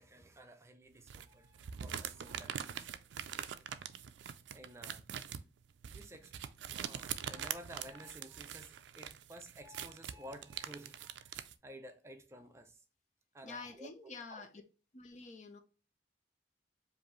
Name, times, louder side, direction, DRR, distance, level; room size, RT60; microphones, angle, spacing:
voice 1, 0.0-2.9 4.5-5.1 5.9-6.4 6.7-12.8 13.3-14.5, right 1 dB, 15° right, 0.4 m, -53 dB
sound 1, 1.1-11.5, right 9 dB, 90° right, 0.4 m, -43 dB
voice 2, 13.4-14.5 14.9-15.6, left 4 dB, 45° left, 0.6 m, -48 dB
4.9 x 2.6 x 3.0 m
head